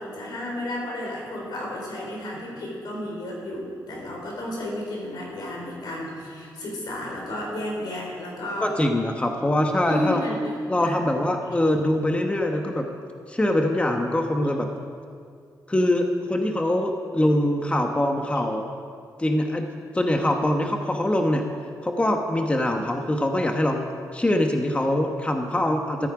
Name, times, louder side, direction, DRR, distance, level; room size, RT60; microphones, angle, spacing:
voice 1, 0.0-8.7 9.9-11.0, left 1 dB, 85° left, -2 dB, 4.4 m, -32 dB
voice 2, 8.6-10.2 10.7-12.9 13.3-14.7 15.7-18.7 19.2-19.7 19.9-21.4 21.8-23.9 24.1-26.1, left 1 dB, 15° left, 3 dB, 1.1 m, -23 dB
14.0 x 13.5 x 5.0 m, 2.2 s
cardioid pair, 95°, 7 cm